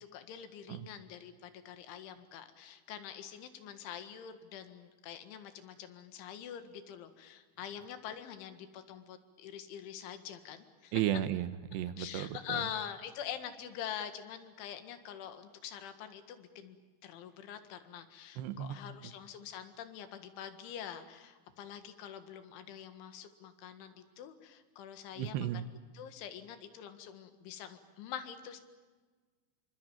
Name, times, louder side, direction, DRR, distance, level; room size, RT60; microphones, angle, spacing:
voice 1, 0.0-10.9 12.0-16.8 17.0-25.6 25.9-28.6, left 9 dB, 80° left, 9 dB, 4.1 m, -45 dB
voice 2, 10.9-12.6 18.4-19.0 25.2-25.6, right 11 dB, 75° right, 13 dB, 2.8 m, -34 dB
27.0 x 24.5 x 8.9 m, 1.4 s
omnidirectional pair, 5.5 m